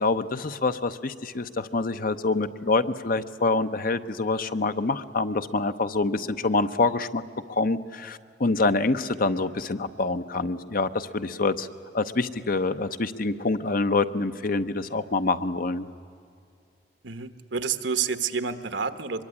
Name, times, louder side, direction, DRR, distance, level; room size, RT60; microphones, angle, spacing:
voice 1, 0.0-7.2 7.5-11.7 11.9-15.9, left 3 dB, 50° left, 11 dB, 0.9 m, -26 dB
voice 2, 17.0-19.2, right 6 dB, 80° right, 10 dB, 1.2 m, -29 dB
24.0 x 22.5 x 9.8 m, 2.5 s
head